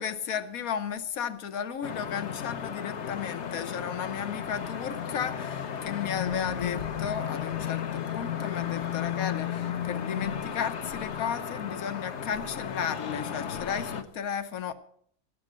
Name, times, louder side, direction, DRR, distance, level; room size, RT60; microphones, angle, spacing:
voice 1, 0.0-14.7, left 8 dB, 80° left, 1.3 m, -34 dB
sound 1, 1.8-14.0, left 8 dB, 55° left, 1.1 m, -34 dB
17.5 x 6.5 x 6.3 m
omnidirectional pair, 1.5 m